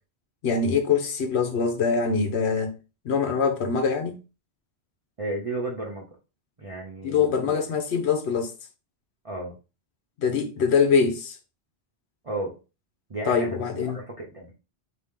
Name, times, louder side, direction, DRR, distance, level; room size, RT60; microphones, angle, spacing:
voice 1, 0.4-2.8 3.0-4.2 7.0-8.5 10.2-11.4 13.2-14.0, left 5 dB, 75° left, 1.1 m, -23 dB
voice 2, 5.2-6.1 6.6-7.6 9.2-9.5 12.2-12.6 13.1-13.6 13.8-14.5, right 2 dB, 35° right, 0.8 m, -33 dB
4.2 x 2.9 x 3.6 m
omnidirectional pair, 1.1 m